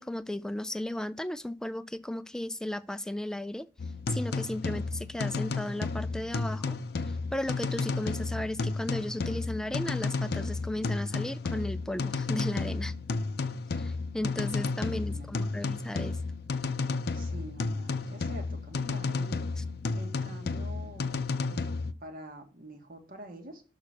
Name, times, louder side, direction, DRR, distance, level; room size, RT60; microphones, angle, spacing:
voice 1, 0.0-3.7 4.1-6.8 7.3-12.9 13.7-16.2 19.6-19.7, left 1 dB, 5° left, 0.3 m, -35 dB
sound 1, 3.8-21.9, left 3 dB, 60° left, 0.5 m, -32 dB
voice 2, 14.8-15.3 17.1-19.5 19.9-21.7 22.0-23.6, right 1 dB, 50° right, 1.6 m, -46 dB
6.5 x 3.9 x 6.4 m
head